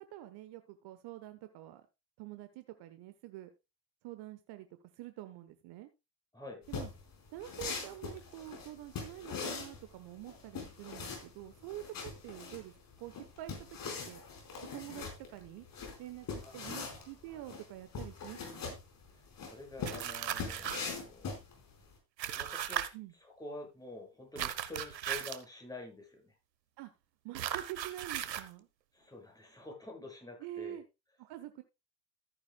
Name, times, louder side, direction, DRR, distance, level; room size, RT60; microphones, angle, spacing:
voice 1, 0.0-1.9 2.2-3.5 4.0-4.7 4.9-5.9 6.7-6.9 7.3-14.2 14.7-15.7 16.0-18.8 22.9-23.1 26.8-26.9 27.2-28.7 30.4-30.8 31.2-31.6, right 14 dB, 55° right, 10 dB, 1.1 m, -47 dB
sound 1, 6.7-21.9, left 5 dB, 40° left, 4.7 m, -42 dB
voice 2, 16.4-17.4 19.1-21.4 22.3-22.9 23.2-26.4 28.9-30.8, left 2 dB, 5° left, 0 dB, 6.7 m, -48 dB
sound 2, 19.8-20.9 22.2-22.9 24.4-25.4 27.3-28.5, right 10 dB, 85° right, 1.0 m, -37 dB
14.0 x 9.4 x 2.3 m, 0.25 s
hypercardioid pair, 70°, 50 cm